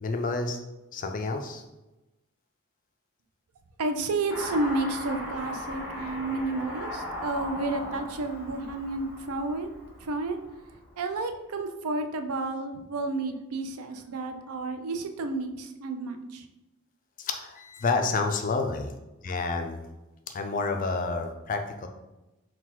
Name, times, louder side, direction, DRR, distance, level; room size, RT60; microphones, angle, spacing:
voice 1, 0.0-0.6 0.9-1.6 17.2-18.9 19.2-19.8 20.3-21.9, left 3 dB, 35° left, 5 dB, 0.4 m, -29 dB
voice 2, 3.8-9.7 10.0-10.4 11.0-16.4, right 2 dB, 80° right, 7 dB, 0.4 m, -31 dB
Car passing by / Accelerating revving vroom, 4.3-10.9, left 1 dB, 10° right, 1.1 m, -38 dB
3.9 x 2.3 x 4.4 m, 1.0 s
head